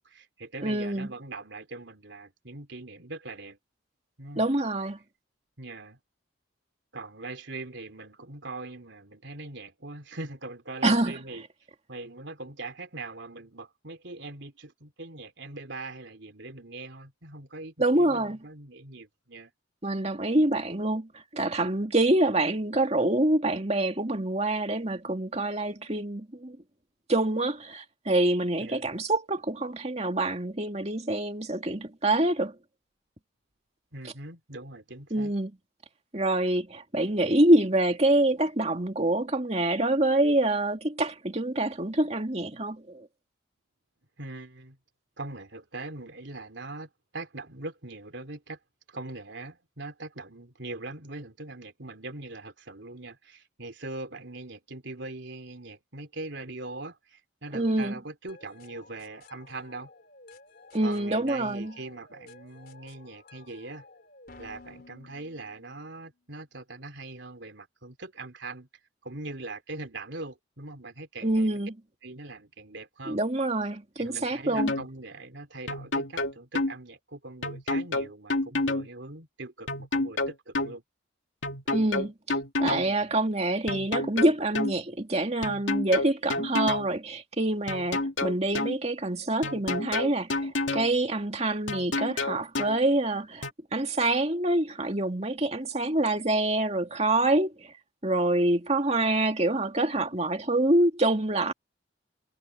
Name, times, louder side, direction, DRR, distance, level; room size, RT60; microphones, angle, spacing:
voice 1, 0.0-3.6 4.2-4.5 5.6-6.0 6.9-11.4 11.9-19.5 28.6-28.9 33.9-35.3 44.2-44.8 45.2-48.6 48.9-59.9 60.8-63.8 64.4-68.7 69.0-71.6 72.0-73.2 74.0-80.8 82.8-83.1, right 2 dB, 65° right, 3.2 m, -41 dB
voice 2, 0.6-1.1 4.4-5.0 10.8-11.2 17.8-18.4 19.8-26.6 27.1-32.6 35.1-35.5 36.1-43.1 57.5-58.0 60.7-61.7 71.2-71.7 73.1-74.7 81.7-97.7 98.0-101.5, right 1 dB, 35° right, 2.4 m, -26 dB
sound 1, 58.3-66.1, left 3 dB, 50° left, 4.4 m, -53 dB
sound 2, 74.6-74.9 75.7-76.7 77.4-78.9 79.7-80.7 81.4-82.9 83.7-84.7 85.4-86.9 87.7-88.8 89.4-90.9 91.7-92.8 93.4-93.5, left 2 dB, 75° left, 2.6 m, -29 dB
head